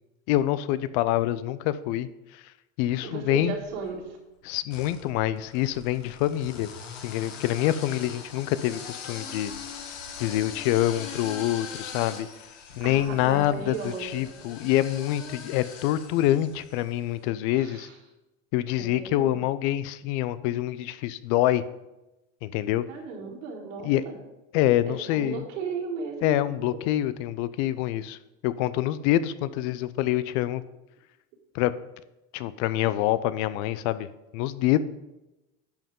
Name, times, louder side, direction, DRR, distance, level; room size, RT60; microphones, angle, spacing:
voice 1, 0.3-2.1 2.8-3.6 4.4-6.7 7.0-9.5 10.2-12.3 12.8-17.9 18.5-21.6 22.4-22.8 23.8-24.0 24.5-25.4 26.2-28.2 28.4-30.6 31.5-31.7 32.3-34.1 34.3-34.8, left 13 dB, 65° left, 15 dB, 0.7 m, -26 dB
voice 2, 3.0-4.2 12.8-14.3 17.5-18.0 18.8-19.4 22.9-24.1 24.9-26.5, right 5 dB, 85° right, -5 dB, 3.8 m, -36 dB
sound 1, 3.3-4.0 4.7-17.0, left 6 dB, 85° left, 1.7 m, -42 dB
10.5 x 7.8 x 3.8 m, 0.97 s
hypercardioid pair, 95°, 37 cm